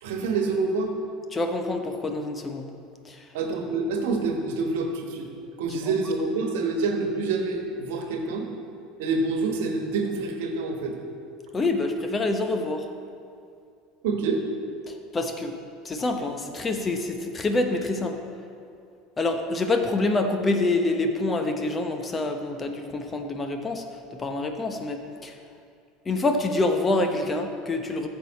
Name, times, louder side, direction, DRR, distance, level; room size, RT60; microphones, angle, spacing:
voice 1, 0.0-0.9 3.3-5.3 5.6-8.5 9.0-11.0 14.0-14.5, right 3 dB, 65° right, 3 dB, 1.4 m, -27 dB
voice 2, 1.3-2.7 3.0-3.2 11.5-12.8 14.9-15.5 15.8-18.2 19.2-23.8 24.2-25.3 26.1-28.1, left 2 dB, 25° left, 5 dB, 1.0 m, -26 dB
14.0 x 6.9 x 4.2 m, 2.3 s
figure-of-eight pair, 75°, 0 cm